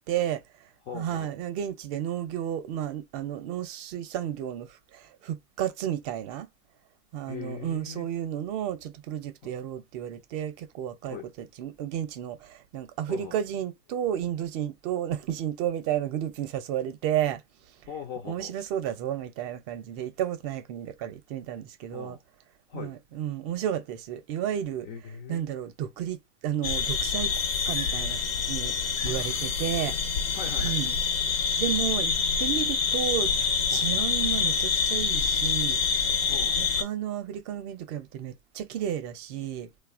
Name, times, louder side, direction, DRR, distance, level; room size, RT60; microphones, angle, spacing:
voice 1, 0.1-0.4 0.9-6.5 7.1-11.2 11.6-17.4 18.3-22.2 22.7-24.9 25.3-27.3 27.7-28.2 28.5-28.7 29.0-30.0 30.6-31.0 31.6-32.1 32.4-35.8 36.6-39.7, right 10 dB, 45° right, 0.6 m, -32 dB
voice 2, 0.8-1.3 7.3-8.1 11.0-11.3 13.1-13.3 17.9-18.5 21.9-22.2 22.7-23.0 24.8-25.4 29.1-29.6 30.3-30.8 33.7-33.9 36.2-36.7, left 8 dB, 30° left, 0.3 m, -40 dB
sound 1, 26.6-36.8, left 5 dB, 80° left, 0.8 m, -26 dB
2.8 x 2.0 x 2.4 m
hypercardioid pair, 125°, 39 cm